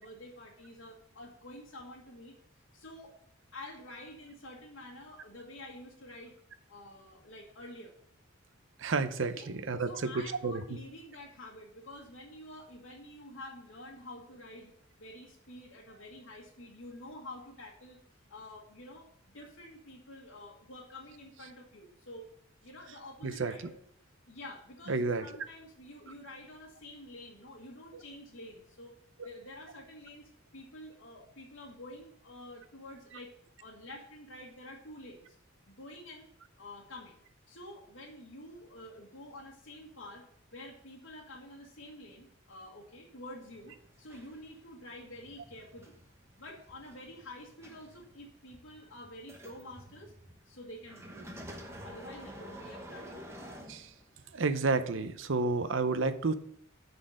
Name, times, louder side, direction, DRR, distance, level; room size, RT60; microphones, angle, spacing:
voice 1, 0.0-2.3 2.7-3.1 3.5-6.4 6.7-8.0 9.3-9.5 9.8-18.0 18.3-22.3 22.6-23.8 24.3-29.0 29.2-33.3 33.6-35.4 35.7-36.3 36.6-37.2 37.5-40.3 40.5-45.9 46.4-50.1 50.4-51.4 51.8-53.2, left 1 dB, 75° left, -3 dB, 1.5 m, -48 dB
voice 2, 8.8-10.1 10.4-10.6 23.2-23.5 24.9-25.3 53.7-53.9 54.3-56.3, right 3 dB, 65° right, 11 dB, 0.7 m, -30 dB
sound 1, 43.5-54.3 55.0-55.1, equal, 15° right, 1.0 m, -50 dB
9.7 x 4.2 x 6.4 m, 0.67 s
head